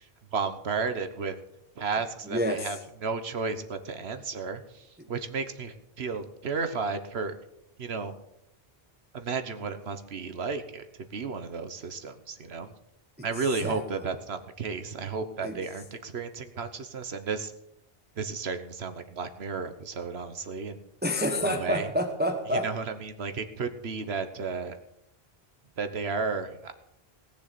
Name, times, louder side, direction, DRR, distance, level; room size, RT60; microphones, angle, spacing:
voice 1, 0.0-1.4 1.8-7.3 7.8-8.2 9.1-12.7 13.2-17.5 18.1-20.8 21.4-21.9 22.6-24.8 25.8-26.7, right 4 dB, 90° right, 9 dB, 1.4 m, -33 dB
voice 2, 2.3-2.7 13.2-13.3 13.6-13.8 15.4-15.6 21.0-22.7, equal, 10° right, 5 dB, 1.1 m, -28 dB
18.5 x 7.0 x 6.8 m, 0.79 s
omnidirectional pair, 1.0 m